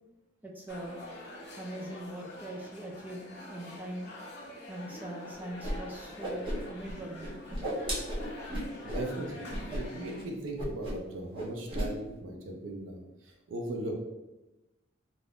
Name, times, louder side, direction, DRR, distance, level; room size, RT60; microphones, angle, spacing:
voice 1, 0.4-1.0 1.6-4.1 4.7-7.4, right 1 dB, 10° right, 0 dB, 0.3 m, -42 dB
sound 1, 0.7-10.2, left 1 dB, 55° left, 0.6 m, -46 dB
Whoosh swoosh swish, 5.6-5.7 6.0-6.9 7.2-9.1 9.5-9.8 10.1-10.2 10.6-11.1 11.3-11.9, equal, 25° right, 0.7 m, -34 dB
voice 2, 8.8-14.0, right 2 dB, 80° right, 1 dB, 0.5 m, -38 dB
3.4 x 2.5 x 2.3 m, 1.0 s
head